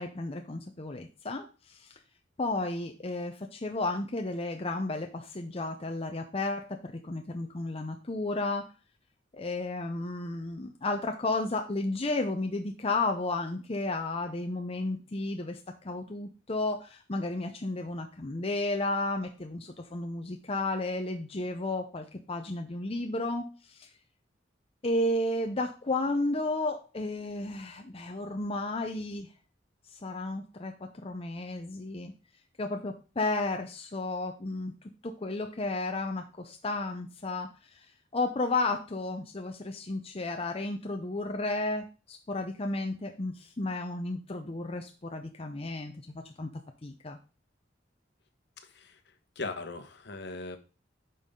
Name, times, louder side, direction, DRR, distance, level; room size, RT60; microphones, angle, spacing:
voice 1, 0.0-1.9 2.4-8.7 9.3-15.6 15.8-23.9 24.8-29.3 30.0-32.1 32.6-34.7 35.0-37.5 38.1-46.5 46.8-47.2, left 2 dB, 30° left, 4 dB, 0.7 m, -33 dB
voice 2, 48.6-49.0 49.3-50.6, left 3 dB, 65° left, 7 dB, 1.2 m, -39 dB
9.5 x 5.6 x 3.8 m, 0.34 s
head